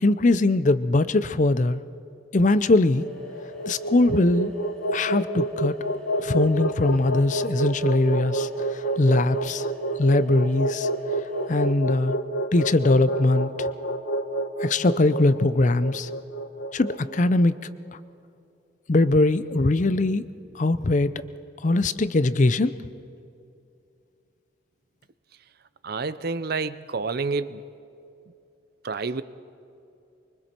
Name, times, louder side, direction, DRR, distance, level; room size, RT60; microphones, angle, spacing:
voice 1, 0.0-1.8 2.3-3.1 3.7-4.5 4.9-5.7 6.2-9.7 10.0-10.9 11.5-12.1 12.5-13.7 14.6-16.1 16.7-17.7 18.9-20.2 20.5-21.1 21.6-22.7, left 2 dB, 40° left, 14 dB, 0.5 m, -21 dB
sound 1, 2.9-11.7, left 1 dB, ahead, 3.3 m, -45 dB
sound 2, 3.2-17.5, right 1 dB, 75° left, 1.0 m, -28 dB
voice 2, 25.8-27.7 28.8-29.2, right 4 dB, 50° right, 15 dB, 0.6 m, -29 dB
24.5 x 23.5 x 4.5 m, 2.6 s
head